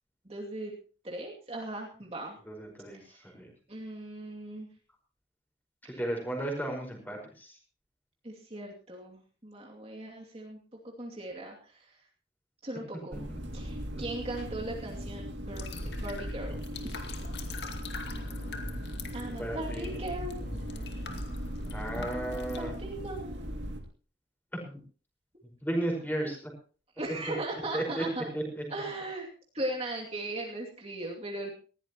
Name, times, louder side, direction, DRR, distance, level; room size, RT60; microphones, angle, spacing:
voice 1, 0.2-0.7 1.0-2.4 2.9-3.2 3.7-4.7 5.8-6.0 8.2-10.6 10.8-12.0 12.6-13.2 13.5-15.7 16.0-16.6 16.8-17.0 19.1-20.4 22.1-23.6 27.0-28.3 28.7-29.3 29.5-31.5, right 1 dB, 30° right, -1 dB, 2.7 m, -38 dB
voice 2, 2.5-3.5 5.9-7.6 13.1-13.2 13.9-14.0 19.2-20.0 21.7-22.7 24.7-24.8 25.6-26.5 27.7-28.0 28.3-28.6, right 1 dB, 10° left, 1 dB, 5.2 m, -34 dB
sound 1, 13.1-23.8, equal, 70° right, 2.5 m, -38 dB
sound 2, 15.5-22.6, left 3 dB, 60° left, 2.3 m, -43 dB
19.5 x 16.0 x 3.0 m, 0.39 s
head